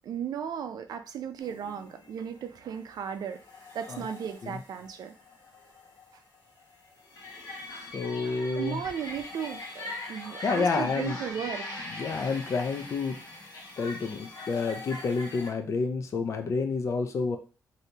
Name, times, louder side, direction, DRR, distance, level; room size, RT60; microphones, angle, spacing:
voice 1, 0.0-3.4 3.7-5.1 8.5-11.7, right 8 dB, 70° right, 8 dB, 0.5 m, -35 dB
sound 1, 1.4-15.5, left 2 dB, 85° left, 1.3 m, -42 dB
voice 2, 7.9-8.8 10.4-11.2 11.9-13.2 13.8-17.4, left 4 dB, 45° left, 5 dB, 0.5 m, -29 dB
3.3 x 2.7 x 2.8 m, 0.35 s
wide cardioid pair, 140°, 7 cm